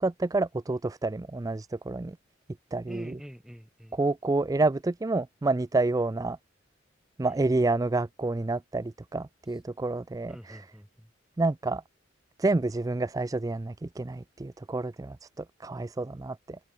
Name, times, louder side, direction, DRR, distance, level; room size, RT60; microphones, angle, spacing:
voice 1, 0.0-2.2 2.7-3.2 3.9-6.4 7.2-10.6 11.4-11.8 12.4-16.6, right 2 dB, 20° right, 0.4 m, -29 dB
voice 2, 2.9-4.0 7.2-7.6 10.3-11.1, equal, 5° right, 3.8 m, -46 dB
open air
head